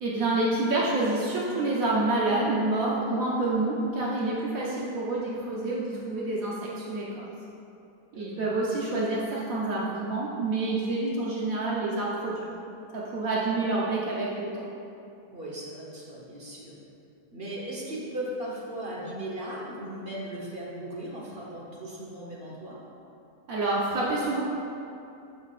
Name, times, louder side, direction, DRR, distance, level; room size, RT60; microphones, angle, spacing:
voice 1, 0.0-7.1 8.2-12.4 12.9-14.7 23.5-24.4, right 2 dB, 65° right, -5 dB, 1.2 m, -28 dB
voice 2, 8.1-8.5 15.3-16.7 17.3-22.8, right 1 dB, 40° right, -5 dB, 1.2 m, -37 dB
11.5 x 5.4 x 2.5 m, 2.7 s
omnidirectional pair, 1.6 m